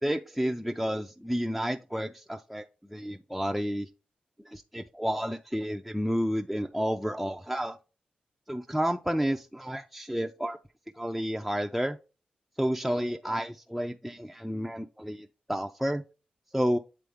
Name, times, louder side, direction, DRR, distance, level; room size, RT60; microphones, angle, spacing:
voice 1, 0.0-3.9 4.4-7.8 8.5-10.6 10.9-12.0 12.6-16.0 16.5-16.8, equal, ahead, 0.4 m, -31 dB
8.4 x 3.8 x 3.5 m
wide cardioid pair, 160°, 3 cm